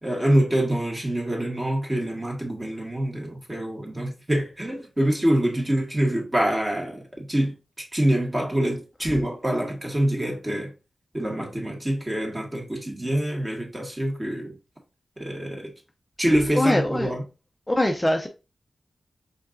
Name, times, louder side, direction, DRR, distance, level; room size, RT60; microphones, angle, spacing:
voice 1, 0.0-10.7 11.1-14.5 15.2-15.7 16.2-17.2, right 1 dB, 25° right, 1.9 m, -25 dB
voice 2, 16.5-17.1 17.7-18.3, left 1 dB, 15° left, 0.5 m, -22 dB
5.0 x 3.9 x 2.6 m
cardioid pair, 55°, 0 cm